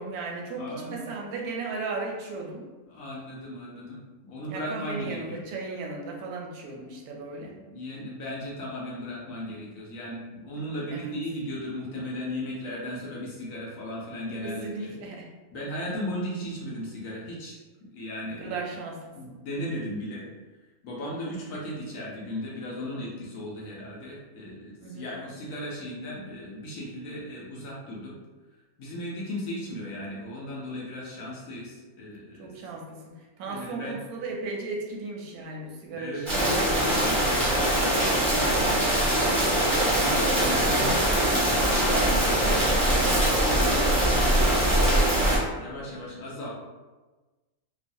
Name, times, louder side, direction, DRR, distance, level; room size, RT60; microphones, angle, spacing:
voice 1, 0.0-2.7 4.5-7.5 10.9-11.1 14.4-15.3 18.3-19.4 24.8-25.0 32.4-36.3, right 3 dB, 90° right, 0 dB, 1.1 m, -36 dB
voice 2, 0.6-1.1 2.9-5.4 7.5-14.9 15.5-18.6 19.1-20.3 20.8-28.1 28.8-32.5 33.5-34.0 35.9-38.7 39.2-42.6 43.0-46.6, equal, 70° left, -4 dB, 1.1 m, -36 dB
sound 1, 36.3-45.4, right 1 dB, 30° right, 0.6 m, -22 dB
3.0 x 2.1 x 2.6 m, 1.2 s
omnidirectional pair, 1.6 m